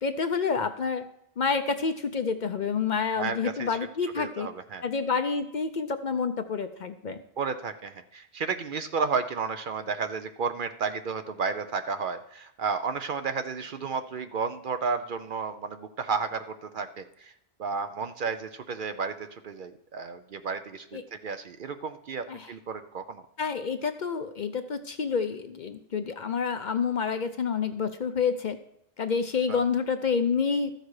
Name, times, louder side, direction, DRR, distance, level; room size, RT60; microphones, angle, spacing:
voice 1, 0.0-1.0 1.4-4.5 4.8-7.2 20.9-21.0 22.3-22.5 23.4-28.6 29.0-30.7, left 5 dB, 50° left, 9 dB, 0.6 m, -28 dB
voice 2, 3.2-3.8 4.2-4.8 7.4-17.3 17.6-23.3 29.5-29.6, right 5 dB, 55° right, 10 dB, 0.7 m, -32 dB
13.5 x 6.6 x 4.8 m, 0.75 s
omnidirectional pair, 1.1 m